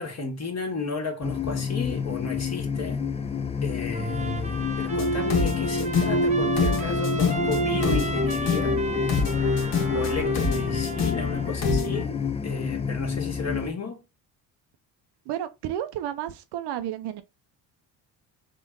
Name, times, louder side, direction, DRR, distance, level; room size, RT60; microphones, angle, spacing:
voice 1, 0.0-3.1 3.6-8.9 9.9-14.0, left 4 dB, 40° left, 1.5 m, -33 dB
sound 1, 1.2-13.7, left 7 dB, 15° left, 0.4 m, -29 dB
Trumpet, 3.9-11.5, right 3 dB, 15° right, 0.7 m, -36 dB
sound 2, 4.9-12.0, left 2 dB, 70° left, 1.2 m, -26 dB
voice 2, 15.3-17.2, right 11 dB, 70° right, 0.7 m, -32 dB
3.7 x 2.5 x 4.4 m
supercardioid pair, 70°, 43 cm